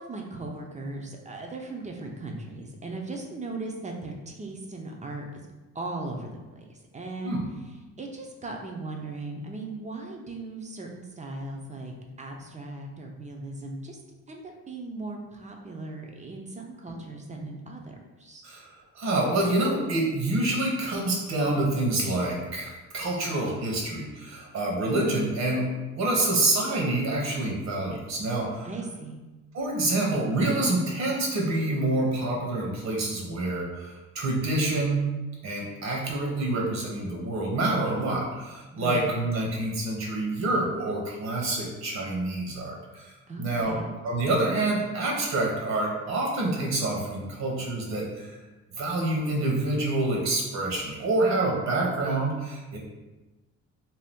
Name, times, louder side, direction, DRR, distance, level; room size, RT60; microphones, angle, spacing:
voice 1, 0.0-5.4 5.7-6.6 6.9-7.4 7.6-14.0 14.3-17.8 18.2-18.5 28.6-29.2 38.7-39.1 43.3-43.9, right 2 dB, 25° right, 1 dB, 0.5 m, -38 dB
voice 2, 19.0-28.7 29.5-35.0 35.4-43.1 43.4-43.7 44.0-48.4 48.8-52.8, right 2 dB, 65° right, -2 dB, 1.0 m, -27 dB
2.7 x 2.2 x 3.4 m, 1.1 s
cardioid pair, 90°, 30 cm